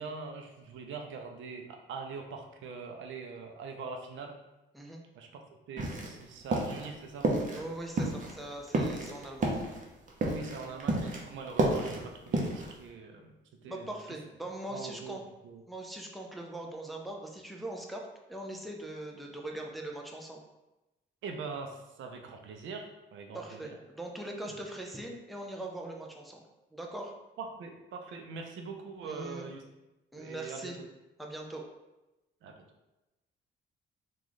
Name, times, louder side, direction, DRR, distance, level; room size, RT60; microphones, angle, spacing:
voice 1, 0.0-4.3 5.1-5.3 5.7-7.3 10.3-13.3 13.6-13.9 14.7-15.6 21.2-23.8 27.4-29.6 30.2-30.9 32.4-32.6, right 4 dB, 75° right, 3 dB, 0.5 m, -42 dB
sound 1, 5.8-6.2 6.5-6.9 7.2-7.7 8.0-11.2 11.5-12.8, right 2 dB, 40° right, 0.7 m, -30 dB
voice 2, 7.5-9.5 13.6-15.2 15.7-18.0 18.3-20.4 23.3-26.4 26.7-27.1 29.0-29.5 30.1-30.8 31.2-31.6, right 1 dB, ahead, 0 dB, 0.5 m, -41 dB
3.0 x 2.4 x 3.9 m, 1.0 s
cardioid pair, 90°, 20 cm